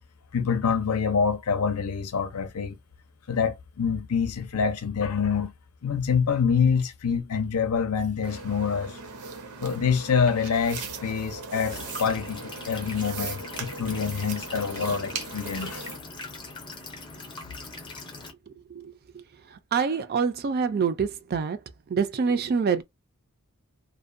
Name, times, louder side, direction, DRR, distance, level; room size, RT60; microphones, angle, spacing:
voice 1, 0.3-2.8 3.3-5.5 5.8-9.0 9.6-15.9, left 6 dB, 80° left, 0.6 m, -26 dB
sound 1, 8.2-16.0, right 4 dB, 80° right, 0.7 m, -38 dB
sound 2, 11.7-18.3, left 3 dB, 20° left, 0.6 m, -41 dB
voice 2, 19.7-21.6 21.9-22.8, right 5 dB, 45° right, 0.4 m, -25 dB
2.5 x 2.1 x 2.5 m
head